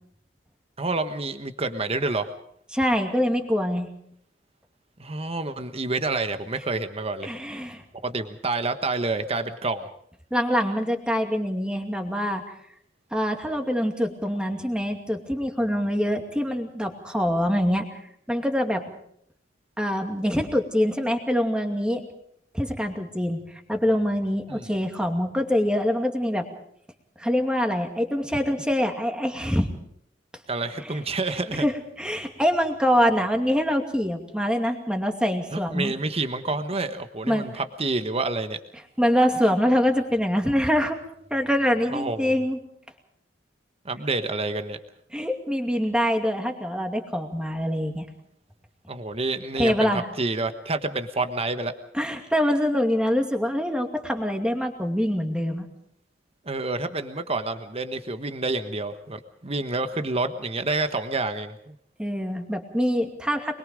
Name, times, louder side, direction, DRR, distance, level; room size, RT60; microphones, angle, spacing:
voice 1, 0.8-2.3 5.0-7.3 8.0-9.9 24.5-24.7 30.5-31.6 35.5-38.6 41.9-42.4 43.8-44.8 48.9-51.7 56.4-61.7, right 3 dB, 30° right, 9 dB, 1.3 m, -28 dB
voice 2, 2.7-3.9 7.2-7.8 10.3-12.4 13.1-17.9 18.3-18.8 19.8-22.0 22.5-23.4 23.7-26.5 27.2-29.7 30.8-31.0 31.5-35.9 37.3-37.4 39.0-41.0 41.3-42.6 45.1-48.1 49.6-50.0 51.9-55.7 62.0-63.6, equal, 5° right, 4 dB, 2.4 m, -24 dB
24.5 x 22.0 x 5.2 m, 0.68 s
head